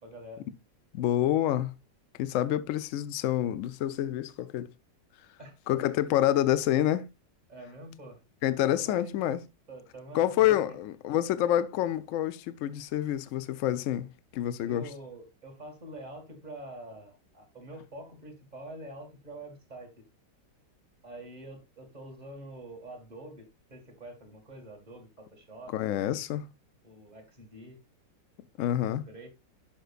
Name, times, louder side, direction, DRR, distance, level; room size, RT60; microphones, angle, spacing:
voice 1, 0.0-0.5 5.4-5.6 7.5-8.2 8.8-9.2 9.7-10.6 14.7-20.1 21.0-26.1 26.8-27.8 28.8-29.3, right 1 dB, 25° right, 2.0 m, -46 dB
voice 2, 0.9-1.7 2.2-4.7 5.7-7.1 8.4-9.4 10.1-14.1 14.3-14.9 25.7-26.5 28.6-29.0, left 12 dB, 70° left, 0.7 m, -27 dB
12.0 x 5.2 x 2.4 m
omnidirectional pair, 1.9 m